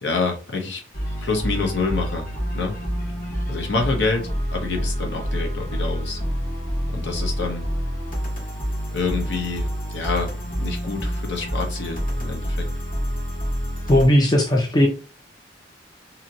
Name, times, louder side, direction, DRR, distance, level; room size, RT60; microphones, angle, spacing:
voice 1, 0.0-0.8 1.2-2.3 2.5-2.7 3.5-6.2 6.9-7.7 8.9-10.3 10.6-12.7, left 4 dB, 65° left, 2 dB, 0.8 m, -27 dB
sound 1, 0.9-14.1, equal, 45° left, 1.4 m, -27 dB
voice 2, 13.9-14.9, left 1 dB, 20° left, 1 dB, 0.4 m, -17 dB
2.8 x 2.8 x 2.6 m, 0.35 s
head